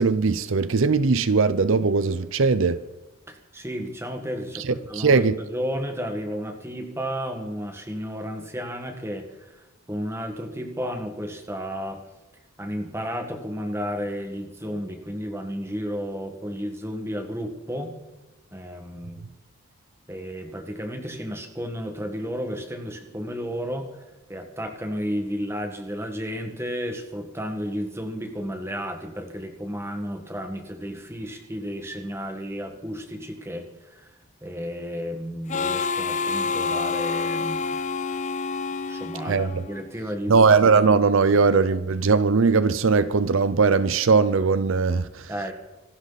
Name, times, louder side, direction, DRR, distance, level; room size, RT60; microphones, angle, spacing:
voice 1, 0.0-2.8 4.5-5.4 39.3-39.6 40.3-45.3, right 4 dB, 60° right, 0.6 m, -20 dB
voice 2, 3.3-12.0 12.6-17.9 18.5-19.2 20.1-24.0 24.3-34.2 34.4-37.7 38.9-40.4 45.3-45.5, equal, 10° right, 1.7 m, -32 dB
Harmonica, 35.5-40.0, left 4 dB, 35° left, 0.5 m, -28 dB
26.0 x 12.5 x 4.1 m
head